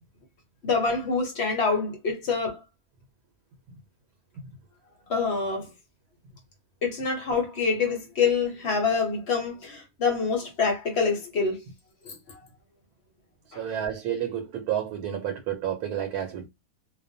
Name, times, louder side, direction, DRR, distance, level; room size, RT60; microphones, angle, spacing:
voice 1, 0.6-2.6 5.1-5.7 6.8-11.6 12.0-12.1 13.5-13.6, left 5 dB, 55° left, 0.9 m, -26 dB
voice 2, 13.6-16.5, right 10 dB, 85° right, 1.1 m, -30 dB
2.5 x 2.2 x 2.6 m
omnidirectional pair, 1.6 m